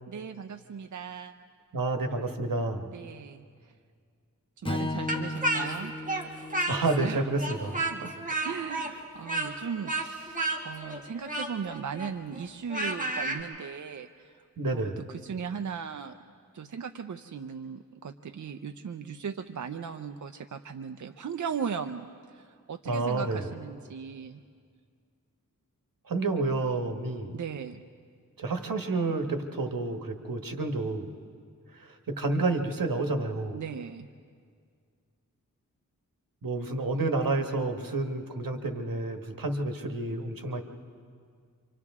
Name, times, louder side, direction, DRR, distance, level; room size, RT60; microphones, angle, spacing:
voice 1, 0.1-1.3 2.9-3.7 4.6-5.9 7.0-7.2 7.9-8.1 8.4-14.4 14.7-16.2 16.5-24.4 27.3-27.8 33.5-34.1, right 6 dB, 60° right, 7 dB, 0.6 m, -38 dB
voice 2, 1.7-2.9 6.7-8.1 14.6-15.0 22.8-23.5 26.1-27.4 28.4-31.1 31.7-33.6 36.4-40.6, right 2 dB, 85° right, 5 dB, 1.5 m, -30 dB
Strum, 4.6-9.0, left 2 dB, 15° left, 1.0 m, -37 dB
Speech, 5.1-7.1 7.4-13.4, right 2 dB, 25° right, 2.0 m, -31 dB
28.5 x 25.0 x 3.6 m, 2.1 s
wide cardioid pair, 70°, 33 cm